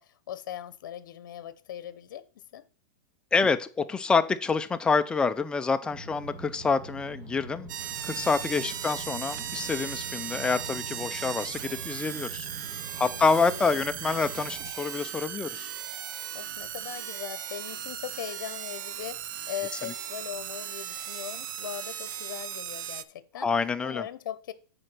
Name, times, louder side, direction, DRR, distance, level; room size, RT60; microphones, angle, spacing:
voice 1, 0.0-2.7 8.6-9.0 13.0-13.8 16.3-23.5 23.8-24.5, left 11 dB, 75° left, 0.7 m, -40 dB
voice 2, 3.3-7.7 8.0-12.5 13.0-15.7 23.4-24.1, left 4 dB, 10° left, 0.4 m, -27 dB
sound 1, 5.9-14.7, right 3 dB, 35° right, 1.7 m, -44 dB
sound 2, 7.7-23.0, right 10 dB, 75° right, 0.6 m, -37 dB
7.8 x 4.4 x 6.0 m
supercardioid pair, 160°, 11 cm